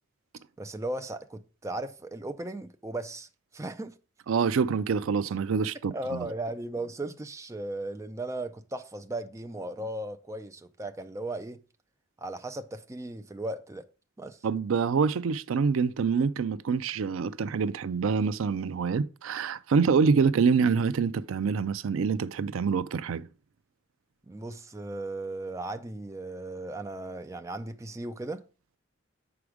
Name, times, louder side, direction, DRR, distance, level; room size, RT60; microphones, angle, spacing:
voice 1, 0.6-3.3 3.5-4.0 5.9-11.6 12.2-13.8 14.2-14.4 24.3-28.4, right 2 dB, 15° right, 0.4 m, -36 dB
voice 2, 4.3-6.3 14.4-23.3, right 5 dB, 75° right, 0.4 m, -26 dB
7.0 x 4.8 x 4.9 m
head